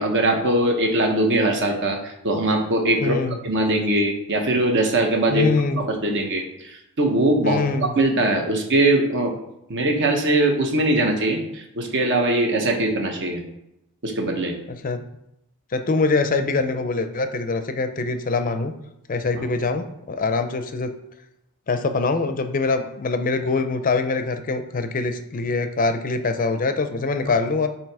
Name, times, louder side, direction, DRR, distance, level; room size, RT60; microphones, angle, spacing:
voice 1, 0.0-5.4 5.8-7.6 8.0-9.3 9.7-13.4 14.0-14.6 19.4-19.5, right 1 dB, 55° right, 3 dB, 1.0 m, -21 dB
voice 2, 3.0-3.4 5.3-5.8 7.4-7.9 14.7-15.0 15.7-18.7 19.1-20.9 21.7-27.7, left 3 dB, 40° left, 9 dB, 0.5 m, -24 dB
7.3 x 2.9 x 4.7 m, 0.85 s
head